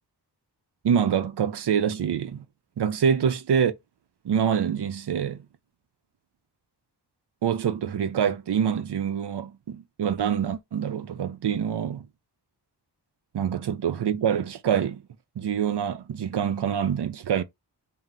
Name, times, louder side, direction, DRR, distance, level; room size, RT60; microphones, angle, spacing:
voice 1, 0.8-2.4 2.8-3.7 4.2-5.4 7.4-12.1 13.3-15.0 15.4-17.4, right 8 dB, 75° right, 0.6 m, -25 dB
3.7 x 2.0 x 4.2 m
wide cardioid pair, 85°, 40 cm